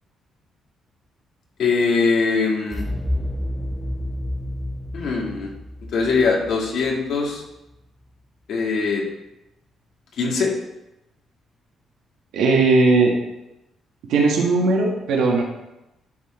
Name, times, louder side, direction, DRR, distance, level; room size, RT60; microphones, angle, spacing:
voice 1, 1.6-2.8 4.9-5.5 5.9-7.4 8.5-9.0 10.1-10.5, left 4 dB, 70° left, -1 dB, 2.1 m, -21 dB
sound 1, 2.7-7.6, left 1 dB, ahead, 0.6 m, -30 dB
voice 2, 12.3-13.1 14.1-15.4, right 3 dB, 85° right, -1 dB, 1.8 m, -18 dB
12.0 x 4.0 x 4.4 m, 0.92 s
cardioid pair, 90°, 0 cm